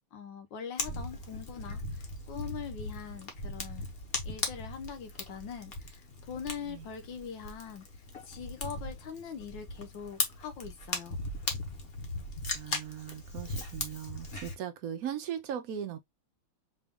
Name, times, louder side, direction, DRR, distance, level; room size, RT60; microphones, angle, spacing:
voice 1, 0.1-3.9 4.2-7.9 8.2-11.2, left 7 dB, 70° left, 1.6 m, -42 dB
Fire, 0.8-14.5, left 2 dB, 40° left, 0.9 m, -38 dB
voice 2, 12.5-16.0, right 9 dB, 85° right, 0.8 m, -38 dB
5.0 x 2.4 x 3.5 m
omnidirectional pair, 2.2 m